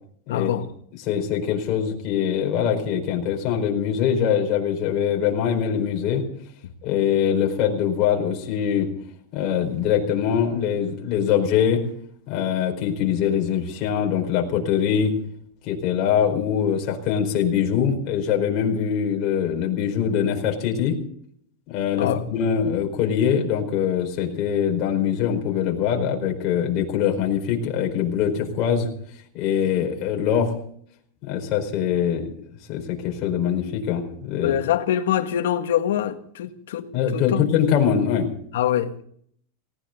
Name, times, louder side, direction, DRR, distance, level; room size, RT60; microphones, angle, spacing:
voice 1, 0.3-0.7 21.9-22.2 34.4-37.5 38.5-39.0, left 10 dB, 80° left, 1.7 m, -24 dB
voice 2, 1.0-6.2 6.8-8.9 9.3-11.8 12.3-15.1 15.6-21.0 21.7-28.9 29.3-30.5 31.2-32.3 32.7-34.6 36.9-38.3, left 8 dB, 35° left, 4.5 m, -23 dB
19.0 x 17.5 x 3.9 m
supercardioid pair, 160°, 0 cm